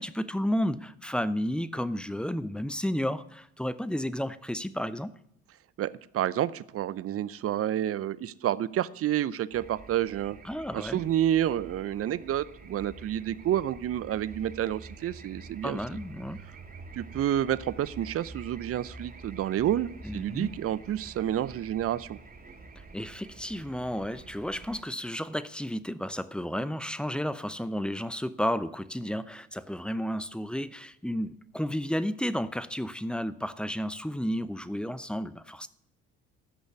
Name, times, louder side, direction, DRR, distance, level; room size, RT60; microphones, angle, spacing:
voice 1, 0.0-5.1 10.4-11.0 15.6-16.4 20.0-20.5 22.9-35.7, equal, 5° left, 14 dB, 0.7 m, -32 dB
voice 2, 5.8-10.4 10.7-15.8 16.9-22.2, right 11 dB, 45° right, 17 dB, 0.6 m, -29 dB
sound 1, 9.5-24.8, right 3 dB, 30° right, 2.4 m, -47 dB
13.5 x 6.4 x 8.1 m, 0.77 s
hypercardioid pair, 50°, 34 cm